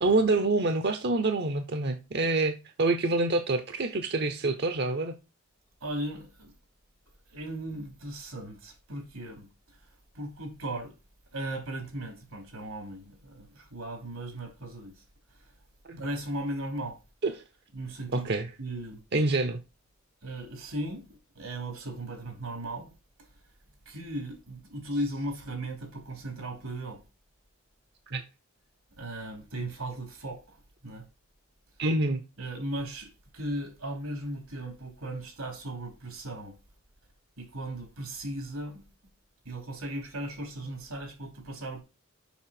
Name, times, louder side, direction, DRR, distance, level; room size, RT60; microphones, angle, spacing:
voice 1, 0.0-5.1 15.9-16.0 17.2-17.4 18.1-18.5 19.1-19.6 28.1-28.2 31.8-32.2, right 2 dB, 50° right, 0.8 m, -26 dB
voice 2, 5.8-6.5 7.3-9.5 10.2-10.9 11.3-15.0 16.0-17.0 17.7-18.2 18.6-19.0 20.2-21.0 21.4-22.9 23.9-27.0 29.0-30.6 30.8-31.1 32.4-36.6 37.4-38.9 39.5-41.8, right 1 dB, 90° right, 3.3 m, -37 dB
7.1 x 5.8 x 5.9 m
head